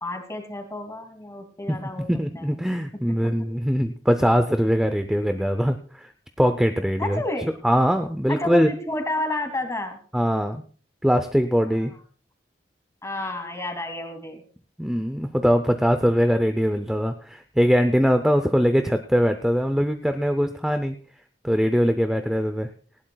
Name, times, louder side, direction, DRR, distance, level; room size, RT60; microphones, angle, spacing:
voice 1, 0.0-2.1 2.4-2.6 3.2-3.3 7.0-7.5 8.3-10.0 11.7-12.0 13.0-14.4, left 1 dB, 15° left, 5 dB, 2.6 m, -31 dB
voice 2, 2.1-6.1 6.4-7.2 7.6-8.7 10.1-10.6 11.0-11.9 14.8-21.0 21.4-22.7, equal, 5° right, 7 dB, 0.6 m, -22 dB
18.5 x 16.0 x 2.3 m, 0.43 s
head